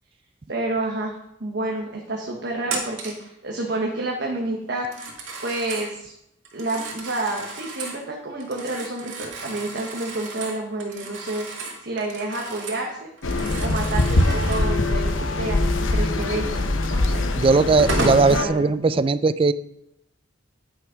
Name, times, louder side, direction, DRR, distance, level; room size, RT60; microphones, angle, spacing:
voice 1, 0.5-1.1 1.4-4.9 5.4-6.1 6.5-11.5 11.8-13.1 13.6-17.2 18.0-18.6, right 2 dB, 60° right, 0 dB, 1.2 m, -29 dB
Telephone, 2.7-3.3 4.8-5.9 6.5-8.0 8.4-12.9 13.2-14.7 16.8-16.9 17.5-18.3, right 2 dB, 80° right, 2.1 m, -34 dB
sound 1, 13.2-18.5, left 2 dB, 90° left, 1.0 m, -23 dB
voice 2, 17.3-19.5, right 3 dB, 30° right, 15 dB, 0.3 m, -18 dB
9.8 x 6.0 x 5.1 m, 0.80 s
head